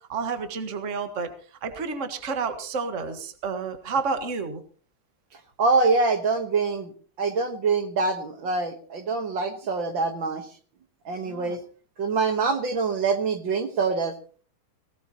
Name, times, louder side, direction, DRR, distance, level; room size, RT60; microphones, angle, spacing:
voice 1, 0.1-1.3 1.6-4.6 11.2-11.6, right 5 dB, 40° right, 7 dB, 1.8 m, -30 dB
voice 2, 5.6-6.9 7.2-10.5 11.1-11.6 12.0-14.1, right 4 dB, 65° right, 7 dB, 2.1 m, -25 dB
19.5 x 17.0 x 3.0 m, 0.41 s
omnidirectional pair, 2.3 m